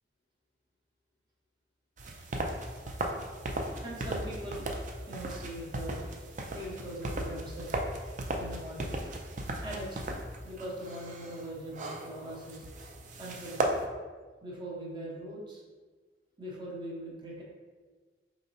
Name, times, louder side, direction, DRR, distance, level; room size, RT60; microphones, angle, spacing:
sound 1, 2.0-13.9, right 1 dB, 40° right, 0.4 m, -36 dB
voice 1, 3.8-4.7 5.1-6.0 6.5-7.8 8.3-9.0 9.6-12.6 13.2-13.7 14.4-15.6 16.4-17.4, right 1 dB, 25° right, -4 dB, 0.9 m, -41 dB
5.0 x 3.0 x 2.6 m, 1.4 s
head